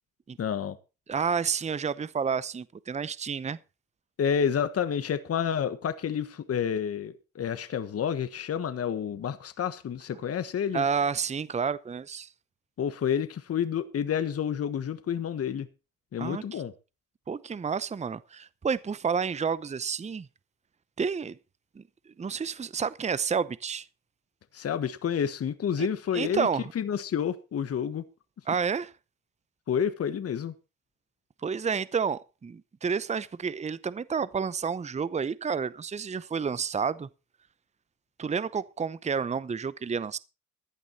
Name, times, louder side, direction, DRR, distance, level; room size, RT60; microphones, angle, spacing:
voice 1, 0.4-0.8 4.2-10.8 12.8-15.7 16.1-16.7 24.5-26.5 26.7-28.0 29.7-30.5, left 8 dB, 50° left, 1.4 m, -29 dB
voice 2, 1.1-3.6 10.7-12.3 16.2-16.6 17.3-20.3 21.0-21.4 21.8-21.9 22.2-23.9 25.8-25.9 26.1-26.7 28.5-28.9 31.4-37.1 38.2-40.2, right 6 dB, 20° right, 0.7 m, -30 dB
15.5 x 10.5 x 4.2 m
cardioid pair, 90°, 30 cm